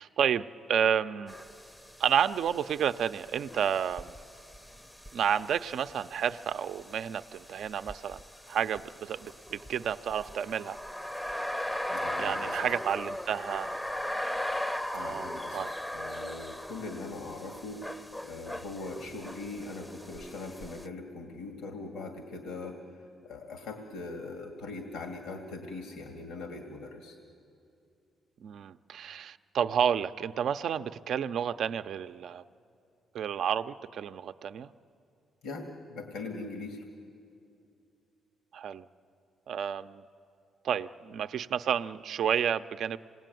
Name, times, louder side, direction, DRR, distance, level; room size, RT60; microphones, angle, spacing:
voice 1, 0.0-1.3 2.0-4.1 5.1-8.2 8.5-10.8 12.2-13.8 14.9-15.7 28.4-32.4 33.1-34.7 38.5-38.9 39.5-40.0 40.6-43.0, right 8 dB, 65° right, 11 dB, 0.6 m, -30 dB
sound 1, 1.3-20.9, left 1 dB, 10° left, 0.7 m, -39 dB
voice 2, 11.9-12.7 14.9-27.2 35.4-36.8, left 3 dB, 85° left, 3 dB, 2.1 m, -41 dB
27.5 x 19.5 x 9.2 m, 2.5 s
cardioid pair, 90°, 0 cm